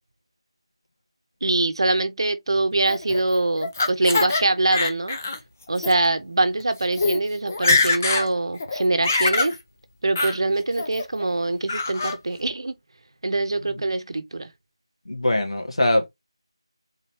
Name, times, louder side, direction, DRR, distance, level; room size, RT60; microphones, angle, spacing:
voice 1, 1.4-5.2 5.7-9.5 10.0-12.7 13.2-14.5, right 2 dB, 60° right, 0.8 m, -23 dB
Laughter, 2.9-4.4 4.7-5.4 5.8-5.9 6.6-6.7 6.9-7.2 7.5-8.3 8.6-9.5 10.1-10.4 10.8-11.2 11.7-12.2, left 3 dB, 25° left, 0.6 m, -23 dB
voice 2, 15.0-16.1, left 1 dB, 75° left, 1.8 m, -23 dB
3.9 x 3.2 x 4.3 m
figure-of-eight pair, 175°, 3 cm